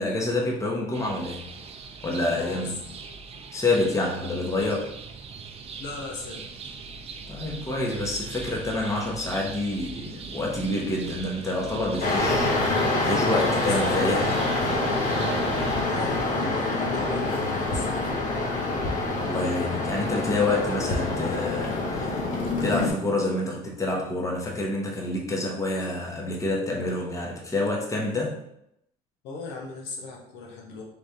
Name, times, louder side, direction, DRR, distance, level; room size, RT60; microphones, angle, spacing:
voice 1, 0.0-1.5 2.0-2.8 3.5-4.9 7.3-12.6 13.0-14.4 19.2-22.2 22.6-28.4, left 2 dB, 15° left, -1 dB, 0.9 m, -28 dB
sound 1, 0.9-15.8, right 4 dB, 35° right, 0.5 m, -40 dB
voice 2, 2.3-2.9 5.8-6.6 13.6-14.0 15.8-17.9 29.2-30.8, left 3 dB, 80° left, -1 dB, 1.0 m, -38 dB
sound 2, 12.0-22.9, left 2 dB, 45° left, 0.9 m, -26 dB
3.5 x 2.5 x 4.3 m, 0.76 s
cardioid pair, 105°, 18 cm